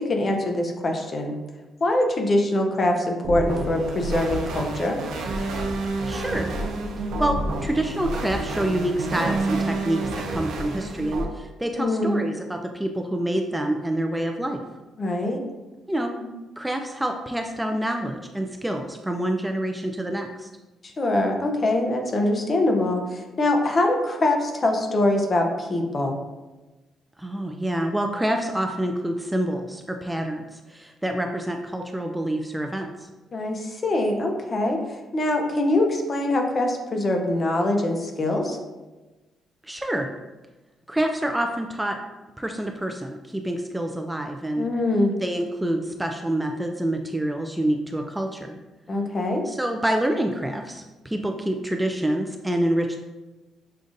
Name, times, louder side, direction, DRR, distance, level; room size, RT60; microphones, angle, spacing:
voice 1, 0.0-1.3 1.8-5.0 11.8-12.2 15.0-15.4 20.8-26.1 33.3-38.6 44.6-45.2 48.9-49.5, left 1 dB, 40° left, 3 dB, 0.7 m, -23 dB
sound 1, 3.2-11.2, right 2 dB, 85° right, 0.6 m, -29 dB
voice 2, 6.1-6.5 7.2-10.0 10.3-14.6 15.9-16.1 16.6-20.5 27.2-32.9 39.7-40.1 40.9-42.0 42.4-44.7 45.2-48.5 49.5-53.0, right 1 dB, 10° right, 3 dB, 0.3 m, -27 dB
6.5 x 2.4 x 2.5 m, 1.1 s
cardioid pair, 90°, 0 cm